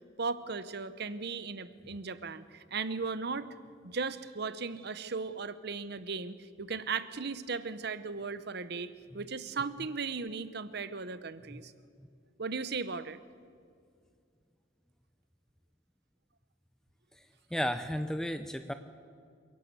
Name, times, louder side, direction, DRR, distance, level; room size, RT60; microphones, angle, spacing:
voice 1, 0.2-3.5 3.8-11.7 12.4-13.2, right 4 dB, 55° right, 14 dB, 0.8 m, -37 dB
voice 2, 17.5-18.7, equal, 5° left, 9 dB, 0.6 m, -33 dB
29.0 x 11.5 x 8.2 m, 2.3 s
head